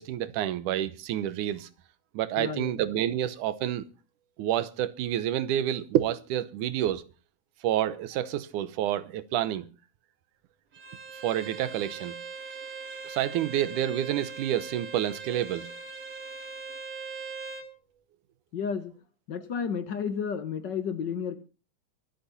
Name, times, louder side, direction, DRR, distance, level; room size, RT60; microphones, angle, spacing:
voice 1, 0.0-1.7 2.1-3.8 4.4-7.0 7.6-9.7 11.2-12.2 13.0-15.7, right 11 dB, 85° right, 2.4 m, -28 dB
voice 2, 2.4-2.8 18.5-18.9 19.3-21.4, left 6 dB, 55° left, 1.2 m, -32 dB
Bowed string instrument, 10.7-17.7, right 5 dB, 55° right, 3.9 m, -41 dB
24.5 x 8.6 x 4.1 m
omnidirectional pair, 3.5 m